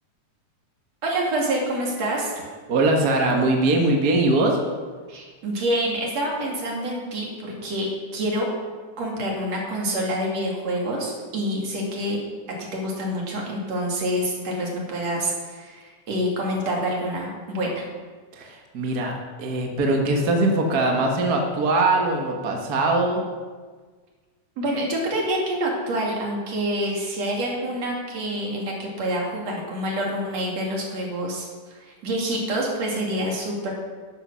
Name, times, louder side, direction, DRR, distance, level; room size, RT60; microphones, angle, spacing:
voice 1, 1.0-2.4 5.1-8.5 9.0-12.2 12.7-17.9 24.6-33.7, right 1 dB, 60° right, -2 dB, 3.7 m, -27 dB
voice 2, 2.7-4.6 18.3-19.1 19.4-23.2, right 2 dB, 40° right, 1 dB, 1.4 m, -21 dB
11.5 x 11.0 x 6.3 m, 1.5 s
omnidirectional pair, 3.4 m